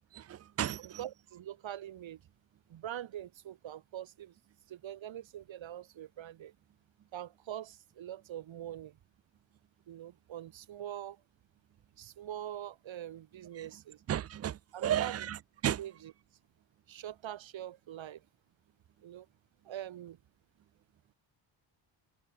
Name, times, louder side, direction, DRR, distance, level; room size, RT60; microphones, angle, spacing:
voice 1, 0.2-0.8 14.1-15.4 15.6-15.8, right 10 dB, 35° right, 0.4 m, -33 dB
voice 2, 0.8-2.2 2.7-4.3 4.7-6.5 7.1-9.0 9.9-11.2 12.0-14.0 14.7-15.3 15.8-16.1 16.9-18.2 19.0-19.3 19.6-20.2, right 11 dB, 90° right, 5.0 m, -43 dB
wide cardioid pair, 155°, 45 cm